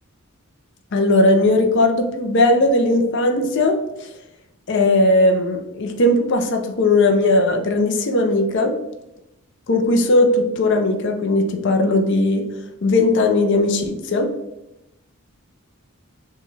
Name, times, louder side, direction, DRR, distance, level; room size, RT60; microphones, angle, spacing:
voice 1, 0.9-4.1 4.7-8.7 9.7-12.4 12.8-14.3, left 2 dB, 55° left, 4 dB, 0.5 m, -18 dB
6.7 x 2.3 x 3.2 m, 0.89 s
head